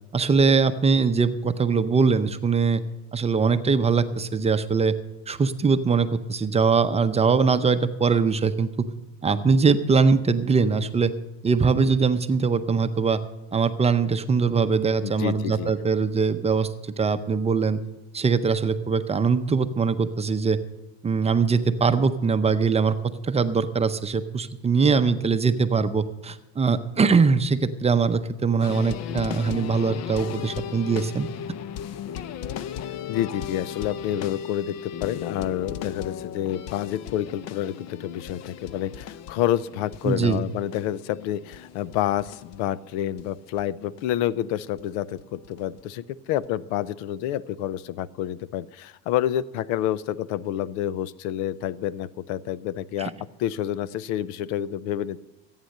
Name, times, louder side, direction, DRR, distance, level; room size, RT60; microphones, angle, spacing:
voice 1, 0.1-2.8 3.1-4.9 5.3-8.9 9.2-11.1 11.4-13.2 13.5-17.8 18.1-20.6 21.0-23.0 23.2-31.3 40.0-40.4 53.0-53.1, right 5 dB, 20° right, 10 dB, 0.6 m, -22 dB
voice 2, 15.0-15.7 33.1-53.1 53.4-55.2, left 12 dB, 90° left, 20 dB, 0.6 m, -28 dB
sound 1, 28.6-43.3 43.6-43.7 44.0-44.1 44.8-44.9 45.2-45.8 46.4-46.5, left 9 dB, 50° left, 0.6 m, -37 dB
14.5 x 9.1 x 6.5 m, 1.0 s
cardioid pair, 130°, 34 cm